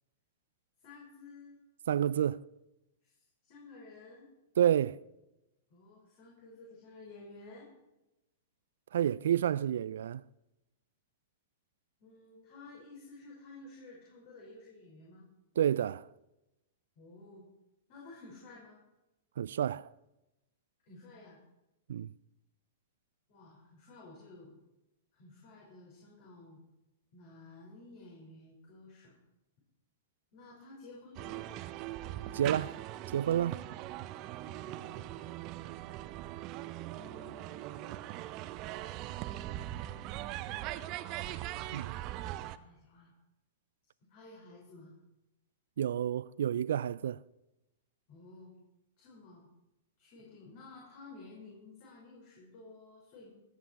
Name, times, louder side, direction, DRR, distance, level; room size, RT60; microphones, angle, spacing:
voice 1, 0.8-1.6 3.0-4.3 5.7-7.7 12.0-15.2 17.0-17.4 17.9-18.8 20.9-21.4 23.3-24.6 25.1-26.6 27.1-29.2 30.3-31.5 34.5-35.3 36.9-37.6 39.4-40.4 41.9-43.1 44.1-44.9 48.1-48.5 49.0-49.5 50.0-53.3, left 3 dB, 50° left, 5.7 m, -53 dB
voice 2, 1.9-2.5 4.6-5.0 8.9-10.2 15.6-16.1 19.4-19.9 21.9-22.1 32.3-32.8 33.1-33.6 41.7-41.9 45.8-47.2, right 10 dB, 70° right, 0.3 m, -29 dB
sound 1, 31.1-42.6, right 14 dB, 40° right, 0.7 m, -41 dB
18.0 x 10.5 x 4.7 m
hypercardioid pair, 110°, 0 cm